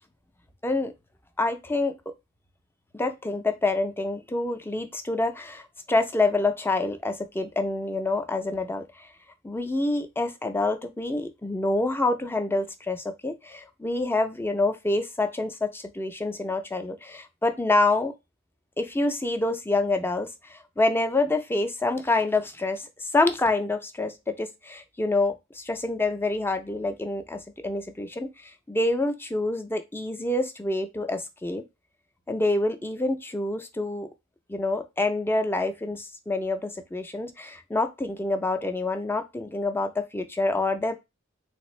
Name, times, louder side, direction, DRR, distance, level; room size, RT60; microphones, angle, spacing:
voice 1, 1.4-1.9 2.9-8.8 9.4-18.1 18.8-28.3 28.7-31.6 32.3-34.1 34.5-41.0, left 2 dB, 10° left, 7 dB, 0.4 m, -27 dB
3.5 x 2.5 x 3.1 m, 0.22 s
head